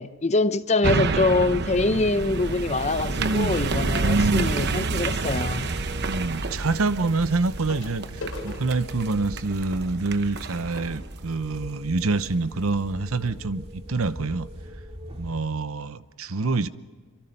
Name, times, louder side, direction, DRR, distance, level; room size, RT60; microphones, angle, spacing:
voice 1, 0.0-5.7, left 2 dB, 30° left, 0.7 m, -24 dB
sound 1, 0.8-12.3 12.7-12.8, right 3 dB, 50° right, 1.0 m, -29 dB
voice 2, 3.1-4.5 6.0-14.5 15.2-16.7, right 3 dB, 75° right, 0.9 m, -26 dB
sound 2, 5.0-15.4, equal, 30° right, 2.2 m, -41 dB
sound 3, 7.7-12.1 12.9-13.0 13.2-13.4 13.9-14.0, left 2 dB, 80° left, 6.8 m, -43 dB
28.0 x 24.5 x 5.5 m
head